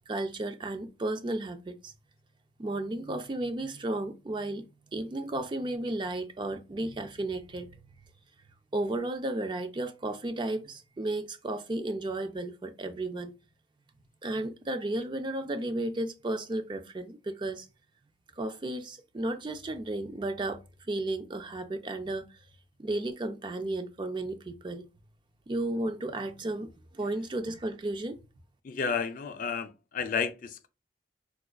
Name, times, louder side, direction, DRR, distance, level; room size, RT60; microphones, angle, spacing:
voice 1, 0.1-1.9 2.6-4.6 4.9-7.7 8.7-13.3 14.2-17.7 18.4-20.6 20.9-22.2 22.8-24.9 25.5-28.2, right 2 dB, 25° right, 0.4 m, -33 dB
voice 2, 28.6-30.7, left 6 dB, 50° left, 0.4 m, -32 dB
4.7 x 2.4 x 2.3 m
head